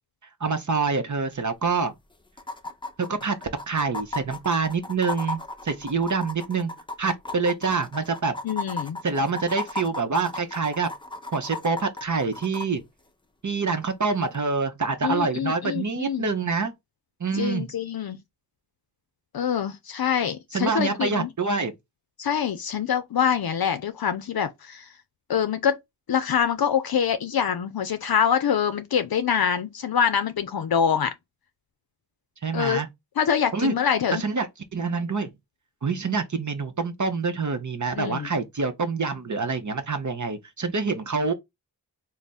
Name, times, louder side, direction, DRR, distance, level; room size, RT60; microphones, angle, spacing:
voice 1, 0.4-1.9 3.0-3.4 3.7-5.4 5.6-6.7 7.0-8.4 9.0-10.9 11.3-12.8 13.4-16.7 17.2-17.7 20.5-21.7 32.4-32.9 33.5-33.8 34.1-35.3 35.8-41.3, right 4 dB, 50° right, 0.7 m, -26 dB
sound 1, 1.3-1.4 1.6-1.7 2.4-12.7 14.3-14.4, left 2 dB, 15° left, 0.6 m, -35 dB
voice 2, 8.4-9.0 15.0-16.3 17.3-18.2 19.3-21.3 22.2-24.9 25.3-25.8 26.1-31.1 32.5-32.8 33.2-34.2 38.0-38.3, left 8 dB, 65° left, 0.5 m, -25 dB
3.4 x 2.1 x 4.0 m
wide cardioid pair, 45°, 39 cm